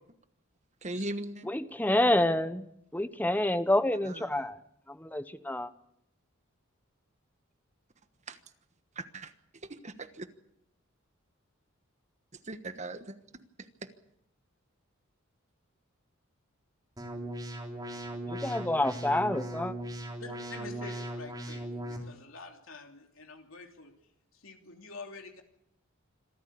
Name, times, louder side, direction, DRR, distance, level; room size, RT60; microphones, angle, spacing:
voice 1, 0.8-1.5 4.0-4.5 8.3-8.4 8.9-9.3 9.6-10.3 12.4-13.9, right 2 dB, 35° right, 10 dB, 1.3 m, -40 dB
voice 2, 1.5-2.6 2.9-4.6 4.9-5.7 18.3-19.7, left 1 dB, 10° left, 12 dB, 0.9 m, -28 dB
sound 1, 17.0-22.0, right 1 dB, 20° right, 3.6 m, -38 dB
voice 3, 20.2-23.9 24.3-25.4, left 3 dB, 75° left, 4 dB, 3.0 m, -47 dB
26.0 x 14.0 x 8.5 m, 0.76 s
head